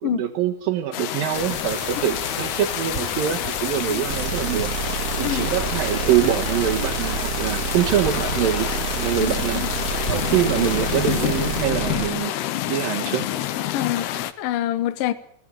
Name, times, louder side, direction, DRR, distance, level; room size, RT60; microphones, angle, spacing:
voice 1, 0.0-4.7 5.2-8.7 9.0-9.7 10.1-12.3 12.7-13.3, right 11 dB, 70° right, 2.7 m, -24 dB
sound 1, 0.9-14.3, left 12 dB, 85° left, 3.1 m, -28 dB
sound 2, 1.3-11.6, equal, 10° left, 2.5 m, -34 dB
sound 3, 4.1-12.1, right 5 dB, 35° right, 1.3 m, -29 dB
voice 2, 9.2-9.7 13.7-15.1, left 13 dB, 70° left, 2.5 m, -26 dB
21.0 x 16.5 x 9.0 m
omnidirectional pair, 4.5 m